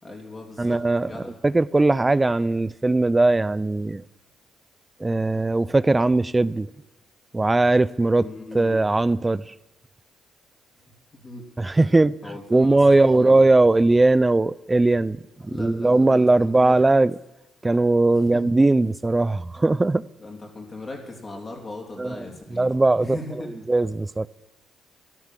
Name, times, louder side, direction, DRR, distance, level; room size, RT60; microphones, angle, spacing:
voice 1, 0.0-1.4 8.2-8.9 11.1-11.8 12.2-13.5 15.5-16.9 18.1-18.4 20.2-22.7 23.0-23.6, left 2 dB, 30° left, 3.1 m, -38 dB
voice 2, 0.6-1.1 1.4-4.0 5.0-6.7 7.3-8.2 8.5-9.4 11.6-12.1 12.5-15.2 15.6-17.1 17.6-20.0 22.0-22.2 22.5-23.2 23.7-24.3, right 2 dB, 20° right, 0.5 m, -19 dB
14.0 x 12.0 x 7.5 m
cardioid pair, 90°, 0 cm